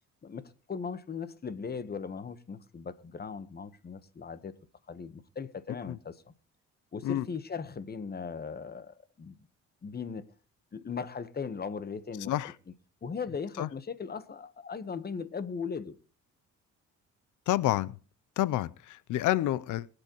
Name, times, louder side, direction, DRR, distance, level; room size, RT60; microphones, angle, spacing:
voice 1, 0.2-4.6 4.9-6.3 6.9-9.4 9.8-10.3 10.7-12.5 13.0-15.9, left 5 dB, 30° left, 1.2 m, -38 dB
voice 2, 17.5-18.0 18.4-19.9, left 14 dB, 80° left, 0.6 m, -28 dB
23.0 x 8.0 x 3.0 m
cardioid pair, 90°, 30 cm